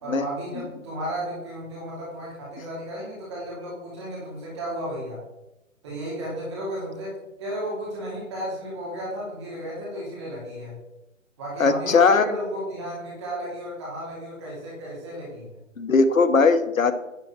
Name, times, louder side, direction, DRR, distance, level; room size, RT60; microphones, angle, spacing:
voice 1, 0.0-5.2 5.8-10.7 11.4-15.5, equal, 20° right, -5 dB, 2.5 m, -34 dB
voice 2, 11.6-12.3 15.8-16.9, left 4 dB, 75° left, 11 dB, 0.9 m, -19 dB
10.0 x 4.4 x 5.8 m, 0.96 s
figure-of-eight pair, 160°, 40 cm